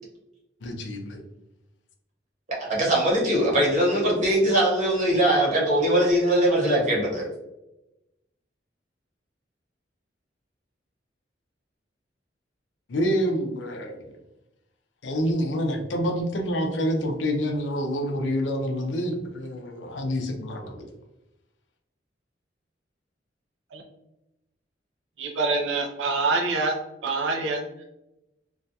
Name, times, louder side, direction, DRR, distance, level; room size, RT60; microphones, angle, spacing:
voice 1, 0.6-1.2 12.9-14.2 15.0-20.9, equal, 90° left, 4 dB, 0.5 m, -27 dB
voice 2, 2.7-7.3, right 1 dB, 45° right, -4 dB, 0.9 m, -21 dB
voice 3, 25.2-26.7 27.0-27.8, right 3 dB, 85° right, 3 dB, 0.4 m, -26 dB
2.4 x 2.2 x 2.6 m, 0.92 s
head